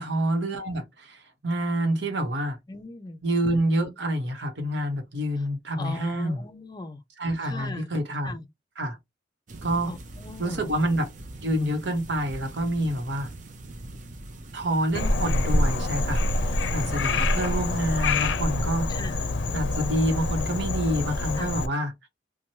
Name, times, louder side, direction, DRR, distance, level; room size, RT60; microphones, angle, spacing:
voice 1, 0.0-2.6 3.2-6.4 7.2-8.3 8.8-9.0 9.6-10.0 10.4-11.1 11.4-13.3 14.5-18.9 19.5-21.9, right 1 dB, 75° right, 0.9 m, -27 dB
voice 2, 2.7-3.2 5.8-7.0 7.4-7.9 8.2-8.5 9.9-10.7 18.9-19.2 21.4-21.5, left 2 dB, 25° left, 0.5 m, -38 dB
sound 1, 9.5-18.3, right 1 dB, 45° right, 0.5 m, -43 dB
Frog, 14.9-21.7, left 2 dB, 80° left, 0.5 m, -26 dB
3.0 x 2.2 x 2.7 m
head